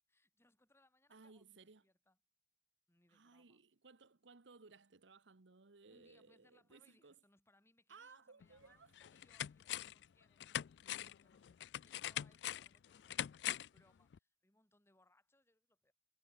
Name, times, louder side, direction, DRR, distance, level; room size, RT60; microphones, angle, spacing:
voice 1, 0.1-2.2 2.9-3.6 5.9-13.3 13.7-15.9, left 1 dB, 15° left, 3.5 m, -74 dB
voice 2, 1.1-1.8 3.1-7.2 7.9-8.9, right 4 dB, 90° right, 1.1 m, -61 dB
sound 1, 8.4-8.5 9.0-10.0 10.4-13.8 14.1-14.2, left 11 dB, 70° left, 0.3 m, -43 dB
head